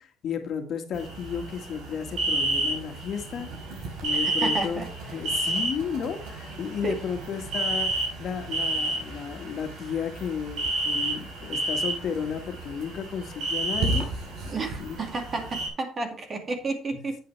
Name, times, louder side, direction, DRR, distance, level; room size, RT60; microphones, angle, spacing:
voice 1, 0.0-14.1 14.8-15.0 16.9-17.1, left 7 dB, 55° left, 1.8 m, -33 dB
sound 1, 0.9-15.7, right 2 dB, 70° right, 4.2 m, -31 dB
voice 2, 4.2-4.9 6.8-7.0 14.5-17.2, right 3 dB, 35° right, 2.2 m, -31 dB
9.6 x 8.4 x 3.4 m
cardioid pair, 110°, 0 cm